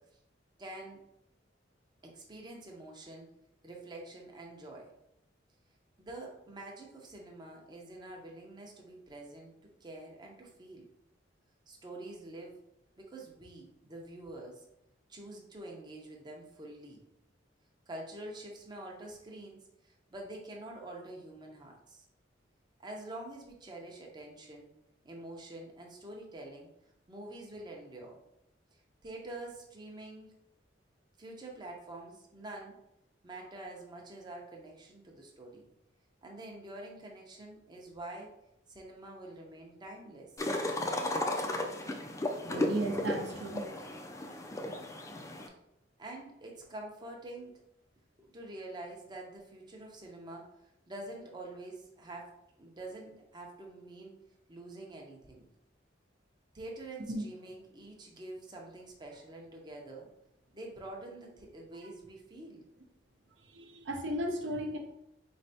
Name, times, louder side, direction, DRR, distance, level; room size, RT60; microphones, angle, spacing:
voice 1, 0.6-1.0 2.0-3.3 3.6-4.9 6.0-10.9 11.7-12.6 13.0-14.6 15.1-17.0 17.9-22.1 22.8-24.7 25.0-26.7 27.1-28.2 28.7-30.3 31.2-32.7 33.2-35.7 36.2-38.3 38.7-40.3 46.0-47.5 48.2-54.2 54.5-55.5 56.5-60.1 60.5-62.6, right 2 dB, 25° right, 0 dB, 0.6 m, -46 dB
sound 1, 40.4-45.5, left 1 dB, 15° left, 0.4 m, -34 dB
voice 2, 42.5-43.9 57.1-57.2 63.4-64.8, right 1 dB, 70° right, 3 dB, 0.6 m, -35 dB
4.2 x 3.2 x 2.7 m, 0.82 s
head